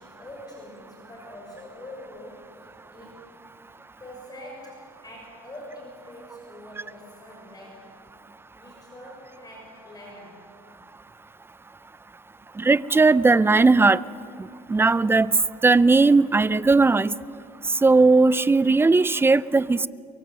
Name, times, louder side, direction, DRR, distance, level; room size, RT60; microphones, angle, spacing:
voice 1, 0.0-3.3 4.0-8.0 8.5-10.4 12.2-12.3, left 1 dB, 25° left, -2 dB, 6.4 m, -44 dB
voice 2, 12.6-14.0 14.4-15.3 15.6-17.1 17.8-19.9, right 3 dB, 15° right, 18 dB, 0.5 m, -18 dB
23.5 x 23.0 x 7.6 m, 2.5 s
cardioid pair, 110°, 17 cm